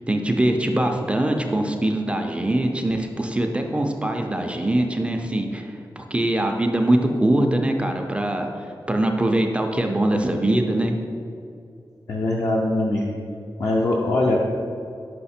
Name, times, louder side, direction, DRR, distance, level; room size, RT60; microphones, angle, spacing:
voice 1, 0.1-8.5 8.9-10.9, right 1 dB, 15° right, 3 dB, 0.4 m, -22 dB
voice 2, 12.1-13.1 13.6-14.4, left 2 dB, 50° left, -2 dB, 0.5 m, -22 dB
5.7 x 5.1 x 4.2 m, 2.5 s
wide cardioid pair, 165°, 8 cm